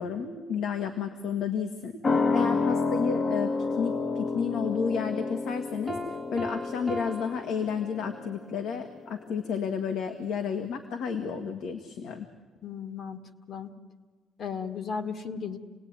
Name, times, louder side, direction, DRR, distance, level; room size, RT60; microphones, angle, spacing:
voice 1, 0.0-12.3, left 6 dB, 75° left, 6 dB, 1.7 m, -32 dB
sound 1, 2.0-9.1 9.4-9.5, left 4 dB, 30° left, 1.0 m, -30 dB
Piano, 5.9-8.4, left 1 dB, 5° right, 1.1 m, -39 dB
voice 2, 12.6-13.7 14.4-15.6, left 6 dB, 50° left, 9 dB, 1.7 m, -35 dB
28.0 x 19.0 x 9.6 m, 1.5 s
cardioid pair, 155°, 0 cm